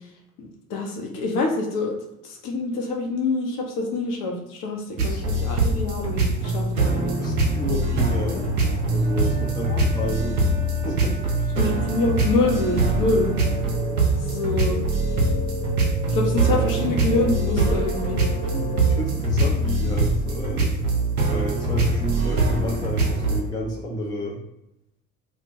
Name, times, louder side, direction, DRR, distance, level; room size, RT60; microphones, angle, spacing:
voice 1, 0.4-2.0 2.2-7.2 9.6-9.8 11.6-13.3 14.1-14.9 16.1-18.2, left 2 dB, 50° left, 1 dB, 0.7 m, -26 dB
sound 1, 5.0-23.4, right 2 dB, 80° right, 0.6 m, -23 dB
voice 2, 7.2-10.4 10.7-11.5 18.5-20.7 21.3-24.4, equal, 10° left, -2 dB, 0.4 m, -30 dB
Wind instrument woodwind instrument, 8.9-13.6, right 2 dB, 30° right, 0.8 m, -40 dB
sound 2, 13.3-19.0, equal, 75° left, 0.9 m, -34 dB
2.2 x 2.1 x 2.8 m, 0.84 s
figure-of-eight pair, 50°, 42 cm